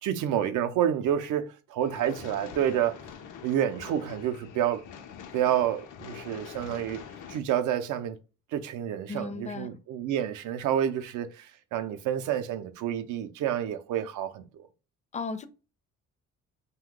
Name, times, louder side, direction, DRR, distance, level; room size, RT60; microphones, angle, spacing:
voice 1, 0.0-3.0 3.4-4.8 5.3-7.0 7.3-8.2 8.5-14.7, right 10 dB, 80° right, 0.5 m, -29 dB
sound 1, 1.8-7.4, left 7 dB, 85° left, 0.6 m, -45 dB
voice 2, 9.1-9.7 15.1-15.5, left 4 dB, 25° left, 0.4 m, -35 dB
2.8 x 2.2 x 3.6 m
cardioid pair, 90°, 30 cm